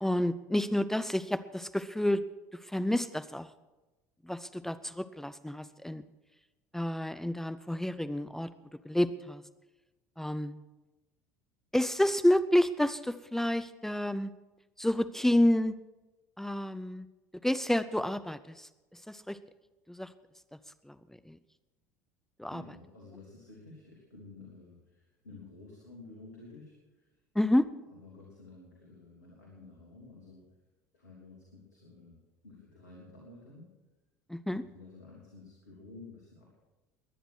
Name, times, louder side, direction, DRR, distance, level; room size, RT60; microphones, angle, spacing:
voice 1, 0.0-2.2 2.5-3.5 4.2-6.0 6.7-8.5 8.8-9.4 10.2-10.6 11.7-14.3 14.8-15.7 16.4-17.1 17.4-19.4 19.9-20.1 20.9-21.0 21.3-21.4 22.4-22.6 27.3-27.7 34.3-34.6, left 1 dB, 5° left, 13 dB, 0.6 m, -29 dB
voice 2, 22.5-27.1 27.9-30.5 30.9-33.7 34.6-36.6, left 3 dB, 80° left, -3 dB, 3.3 m, -52 dB
21.0 x 10.5 x 6.3 m, 1.1 s
figure-of-eight pair, 65°, 9 cm